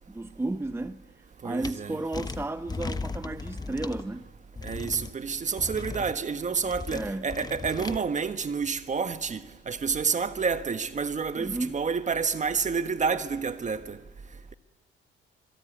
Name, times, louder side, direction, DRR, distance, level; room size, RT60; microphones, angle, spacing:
voice 1, 0.1-1.0 1.4-4.3 6.9-7.3 11.4-11.7, right 2 dB, 10° right, 0.8 m, -33 dB
voice 2, 1.4-2.0 4.6-14.0, right 5 dB, 40° right, 1.5 m, -29 dB
sound 1, 1.6-1.7 2.1-4.0 4.6-5.1 5.6-6.1 6.7-8.0, left 3 dB, 20° left, 1.1 m, -36 dB
27.0 x 22.5 x 9.4 m
cardioid pair, 90°, 20 cm